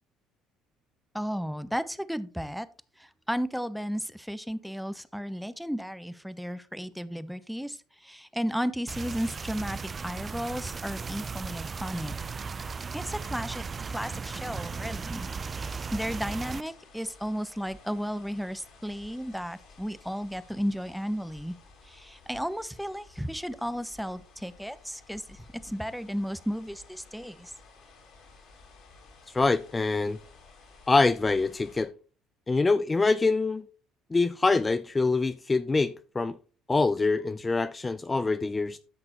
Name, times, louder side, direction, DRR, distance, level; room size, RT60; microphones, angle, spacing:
voice 1, 1.1-2.7 3.0-12.2 12.9-15.3 15.5-21.5 21.9-27.5, equal, ahead, 0.9 m, -34 dB
sound 1, 8.9-16.6, right 5 dB, 35° right, 0.5 m, -36 dB
sound 2, 13.9-31.8, left 3 dB, 65° left, 4.6 m, -54 dB
voice 2, 29.3-30.2 30.9-31.9 32.5-33.6 34.1-36.4 36.7-38.8, left 3 dB, 25° left, 0.5 m, -25 dB
13.0 x 5.9 x 3.0 m
hypercardioid pair, 70°, 0 cm